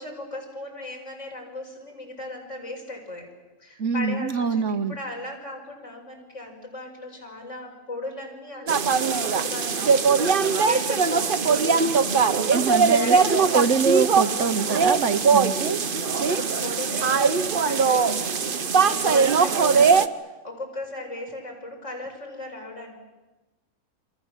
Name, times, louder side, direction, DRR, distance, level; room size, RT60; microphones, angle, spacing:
voice 1, 0.0-3.3 3.6-4.6 4.9-12.5 12.9-13.6 16.3-18.4 18.8-23.0, left 2 dB, 55° left, 2 dB, 5.9 m, -37 dB
voice 2, 3.8-5.0 12.5-13.2 13.5-15.8, right 5 dB, 55° right, 13 dB, 1.3 m, -24 dB
sound 1, 8.7-20.1, right 5 dB, 40° right, 1.1 m, -21 dB
28.0 x 25.5 x 7.4 m, 1.1 s
omnidirectional pair, 1.5 m